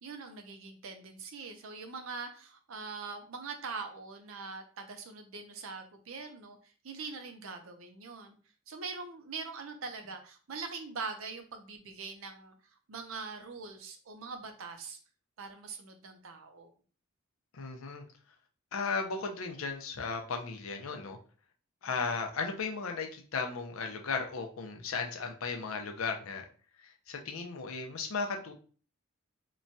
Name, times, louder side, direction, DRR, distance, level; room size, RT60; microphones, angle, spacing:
voice 1, 0.0-8.4 8.7-12.5 12.9-15.0 15.4-16.7, right 4 dB, 75° right, 5 dB, 0.6 m, -43 dB
voice 2, 17.5-18.0 18.7-21.2 21.8-26.4 26.8-28.5, left 4 dB, 85° left, 3 dB, 0.6 m, -35 dB
3.0 x 2.2 x 2.6 m, 0.40 s
head